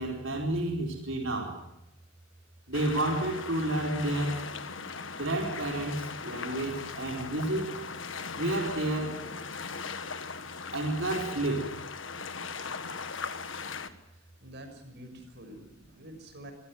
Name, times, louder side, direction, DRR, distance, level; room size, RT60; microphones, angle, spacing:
voice 1, 0.0-1.6 2.7-4.5 5.2-7.8 8.3-9.3 10.7-11.7, right 1 dB, 70° right, 1 dB, 4.5 m, -30 dB
sound 1, 2.7-13.9, left 5 dB, 70° left, 1.6 m, -39 dB
voice 2, 14.1-16.5, right 1 dB, 55° right, 6 dB, 6.2 m, -48 dB
26.0 x 16.5 x 9.3 m, 0.86 s
head